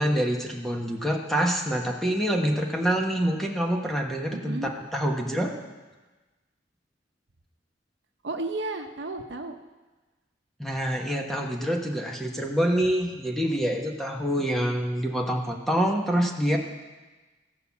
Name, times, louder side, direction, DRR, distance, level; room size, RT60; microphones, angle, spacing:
voice 1, 0.0-4.6 4.9-5.5 10.6-16.6, equal, ahead, 1 dB, 1.2 m, -26 dB
voice 2, 4.3-4.7 8.2-9.5, right 2 dB, 70° right, 5 dB, 0.9 m, -33 dB
15.5 x 5.8 x 7.2 m, 1.2 s
head